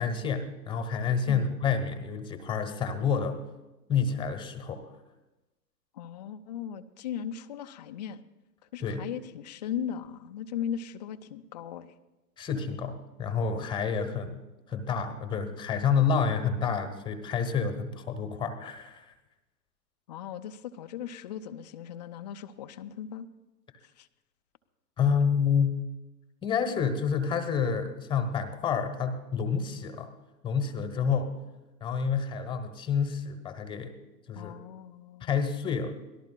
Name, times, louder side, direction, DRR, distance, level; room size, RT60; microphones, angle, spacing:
voice 1, 0.0-3.4 3.9-4.8 8.8-9.0 12.4-14.4 14.7-19.1 25.0-25.8 26.4-30.1 30.4-31.3 31.8-33.9 34.3-34.5 35.2-36.0, left 6 dB, 10° left, 8 dB, 1.0 m, -29 dB
voice 2, 5.9-8.2 8.7-11.9 20.1-23.3 24.0-24.1 34.4-35.3, left 9 dB, 25° left, 9 dB, 0.5 m, -38 dB
24.5 x 18.5 x 2.3 m, 1.1 s
figure-of-eight pair, 120°, 50 cm